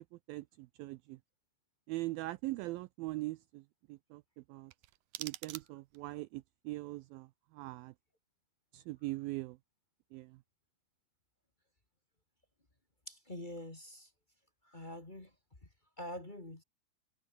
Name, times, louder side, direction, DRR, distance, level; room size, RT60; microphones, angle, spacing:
voice 1, 0.3-1.2 1.9-3.6 3.9-4.7 5.2-7.9 8.7-9.6 10.1-10.4, right 20 dB, 90° right, 2.1 m, -41 dB
sound 1, 4.7-6.1, right 16 dB, 75° right, 2.0 m, -47 dB
voice 2, 13.1-14.1 14.6-15.3 16.0-16.6, left 1 dB, 15° left, 1.9 m, -45 dB
omnidirectional pair, 4.8 m